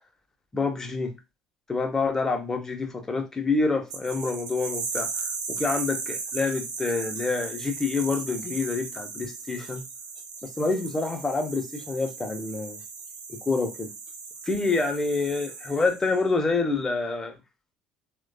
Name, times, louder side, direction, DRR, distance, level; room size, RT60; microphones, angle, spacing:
voice 1, 0.5-1.1 1.7-9.8 10.4-12.8 13.3-13.9 14.4-17.4, left 3 dB, 20° left, 0.7 m, -27 dB
sound 1, 3.9-16.2, right 5 dB, 55° right, 0.6 m, -37 dB
3.1 x 2.2 x 2.5 m
figure-of-eight pair, 55°, 2 cm